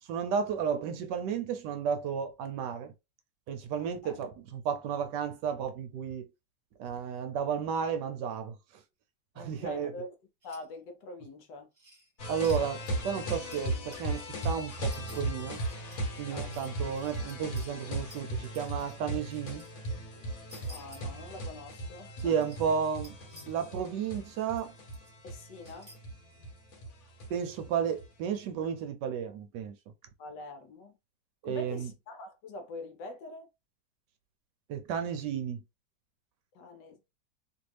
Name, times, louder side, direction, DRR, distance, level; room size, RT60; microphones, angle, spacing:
voice 1, 0.1-2.9 3.5-6.3 6.8-8.5 9.4-9.9 12.3-15.6 16.2-19.6 22.2-23.2 23.5-24.7 27.3-29.7 31.4-31.9 34.7-35.6, right 7 dB, 75° right, 1.1 m, -33 dB
voice 2, 3.8-4.2 9.3-10.2 10.4-11.7 16.3-16.5 20.7-22.3 25.2-25.9 30.2-30.9 31.4-33.5 36.5-37.0, left 2 dB, 75° left, 1.2 m, -44 dB
sound 1, 10.4-10.7 11.8-12.6 12.9-13.0 13.5-17.7 18.1-19.7 20.5-21.0 22.1-22.6 23.0-23.7 24.6-24.7 24.9-25.1 25.6-26.0, equal, 25° right, 1.0 m, -54 dB
sound 2, 12.2-28.0, right 1 dB, 55° left, 1.3 m, -37 dB
2.9 x 2.6 x 3.1 m
omnidirectional pair, 2.1 m